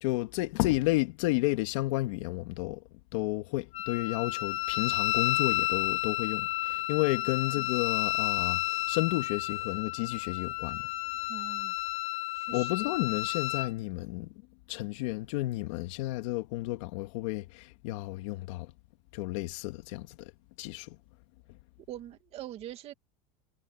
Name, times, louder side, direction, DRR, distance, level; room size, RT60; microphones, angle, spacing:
voice 1, 0.0-2.8 3.1-10.9 12.5-14.3 14.7-18.7 19.1-20.3 20.6-21.0, left 19 dB, 70° left, 2.5 m, -32 dB
Wind instrument woodwind instrument, 3.7-13.7, left 17 dB, 40° left, 0.9 m, -31 dB
voice 2, 11.3-11.7 12.3-12.7 21.9-22.9, right 13 dB, 35° right, 2.4 m, -43 dB
supercardioid pair, 160°, 17 cm